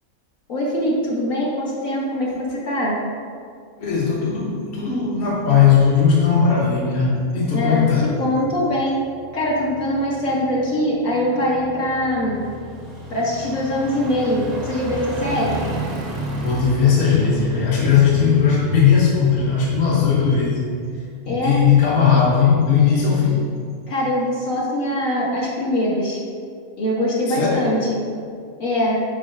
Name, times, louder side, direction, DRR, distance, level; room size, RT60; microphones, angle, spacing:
voice 1, 0.5-3.0 7.5-9.0 9.3-12.4 13.1-15.6 21.3-21.6 23.9-26.2 26.8-28.0 28.6-29.0, left 1 dB, 70° left, -5 dB, 1.8 m, -22 dB
voice 2, 3.8-8.1 16.4-20.6 21.3-23.5 27.3-27.7, left 6 dB, 50° left, -5 dB, 1.4 m, -18 dB
sound 1, 5.2-21.4 21.8-21.9, right 1 dB, 35° right, 0.7 m, -34 dB
9.1 x 3.1 x 5.3 m, 2.2 s
omnidirectional pair, 1.5 m